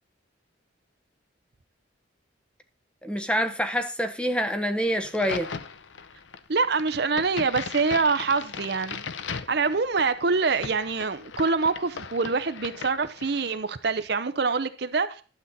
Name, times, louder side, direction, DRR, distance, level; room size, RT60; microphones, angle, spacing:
voice 1, 3.0-5.5, equal, 5° left, 0.9 m, -26 dB
Crack, 5.0-13.6, left 5 dB, 75° left, 0.8 m, -38 dB
voice 2, 6.5-9.0 9.5-15.2, right 4 dB, 55° right, 0.7 m, -25 dB
12.0 x 7.5 x 4.1 m
head